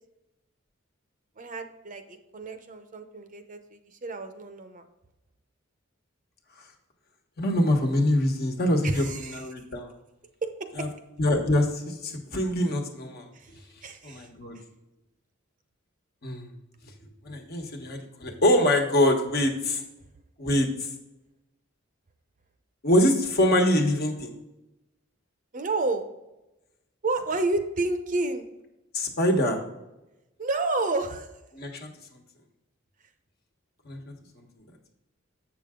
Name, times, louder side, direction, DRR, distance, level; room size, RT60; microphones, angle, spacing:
voice 1, 1.4-4.8 8.8-9.6 10.4-10.5 10.8-10.9 13.3-13.5 13.8-14.3 25.5-26.1 27.0-28.4 30.4-31.3, right 2 dB, 40° right, 7 dB, 0.7 m, -30 dB
voice 2, 7.4-9.0 9.3-9.9 10.8-10.9 11.2-13.3 14.0-14.6 16.2-16.5 17.2-19.8 20.4-20.7 22.8-24.3 28.9-29.6 31.5-31.9 33.9-34.1, left 1 dB, 50° left, 2 dB, 1.3 m, -24 dB
7.7 x 6.8 x 3.7 m, 0.96 s
head